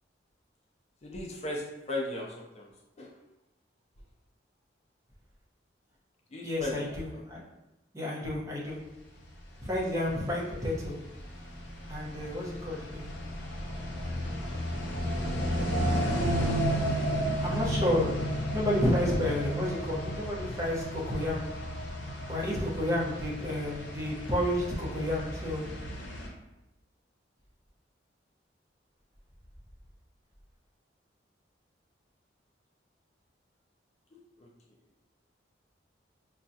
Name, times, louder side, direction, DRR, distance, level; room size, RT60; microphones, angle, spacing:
voice 1, 1.0-2.7 3.0-3.1 6.3-7.2 34.4-34.5, left 1 dB, 35° left, -2 dB, 0.4 m, -37 dB
voice 2, 6.4-7.4 7.9-8.8 9.6-10.9 11.9-13.1 17.4-21.4 22.3-25.7, left 1 dB, 15° right, -5 dB, 0.8 m, -31 dB
sound 1, 9.7-26.3, equal, 75° left, 0.7 m, -33 dB
5.1 x 2.3 x 2.6 m, 0.97 s
head